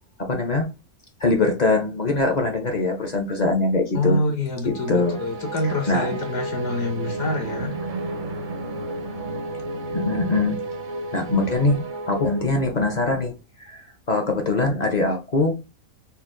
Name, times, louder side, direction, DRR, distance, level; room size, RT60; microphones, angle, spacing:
voice 1, 0.2-0.7 1.2-4.2 4.7-5.2 5.9-6.1 9.9-10.6 11.1-13.3 13.6-15.6, left 2 dB, 40° left, 0.6 m, -22 dB
voice 2, 3.9-7.7, left 2 dB, 70° left, 1.4 m, -26 dB
sound 1, 4.6-13.1, right 2 dB, 50° right, 0.6 m, -32 dB
4.3 x 2.1 x 3.7 m
omnidirectional pair, 1.5 m